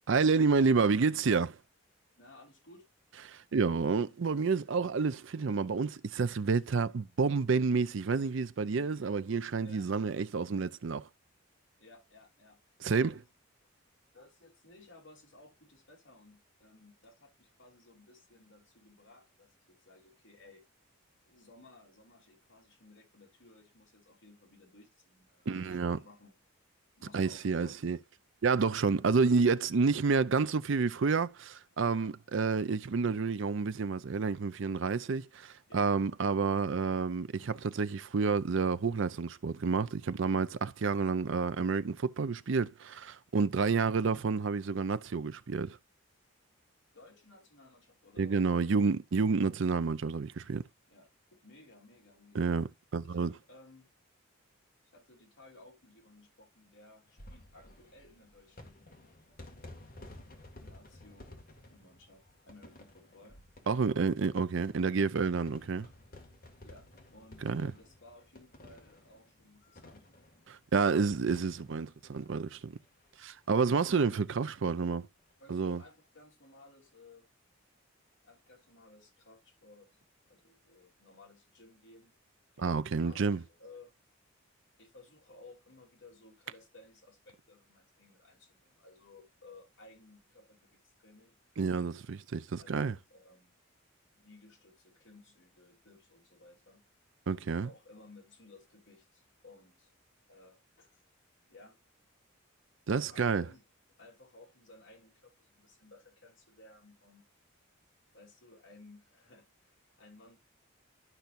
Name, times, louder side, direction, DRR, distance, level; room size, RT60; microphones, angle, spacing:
voice 1, 0.1-1.6 3.3-11.1 12.8-13.1 25.5-26.0 27.1-28.0 28.4-35.2 35.7-45.8 48.2-50.6 52.3-53.3 63.7-65.9 67.4-67.7 70.5-72.7 73.2-75.1 75.5-75.8 82.6-83.4 91.6-93.0 97.3-97.7 102.9-103.4, right 4 dB, 60° right, 0.5 m, -29 dB
voice 2, 2.2-2.9 9.6-9.9 11.8-12.6 12.8-13.3 14.1-20.6 21.2-26.4 26.9-27.8 31.7-32.2 35.0-35.1 35.7-35.9 43.5-44.2 46.9-48.7 50.4-50.5 50.9-52.5 53.0-53.9 54.9-58.9 60.6-61.4 61.7-63.4 63.8-64.1 66.6-70.0 70.8-71.1 72.1-72.3 75.4-77.3 78.2-80.0 80.3-82.2 82.5-84.0 84.8-91.4 92.6-93.5 94.1-96.8 97.6-99.9 100.3-100.9 101.5-101.8 102.9-103.6 104.0-107.3 108.1-110.4, left 2 dB, 60° left, 3.3 m, -57 dB
sound 1, 57.0-73.1 73.4-73.5 73.7-73.8 75.1-75.3, left 1 dB, 45° left, 2.1 m, -54 dB
12.0 x 5.7 x 2.6 m
head